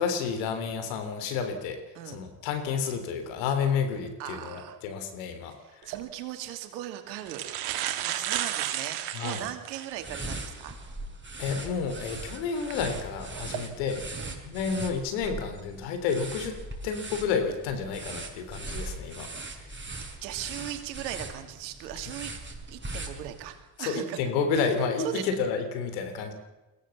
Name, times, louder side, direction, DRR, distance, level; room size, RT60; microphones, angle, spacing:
voice 1, 0.0-1.8 2.1-5.6 9.1-9.4 11.4-14.0 14.4-19.3 19.6-19.7 23.8-26.3, left 6 dB, 85° left, 7 dB, 3.5 m, -30 dB
voice 2, 4.2-4.8 5.6-7.4 8.0-10.8 13.5-13.7 14.2-14.4 20.2-22.3 22.7-24.2 25.0-25.3, right 12 dB, 90° right, 7 dB, 2.5 m, -38 dB
sound 1, 5.8-6.0 6.8-6.9 7.2-10.0 10.5-10.6 12.5-12.7 13.3-13.6, right 12 dB, 75° right, 2.5 m, -32 dB
sound 2, 9.9-23.6, right 2 dB, 20° right, 6.0 m, -40 dB
22.5 x 16.5 x 7.2 m, 1.0 s
hypercardioid pair, 60°, 50 cm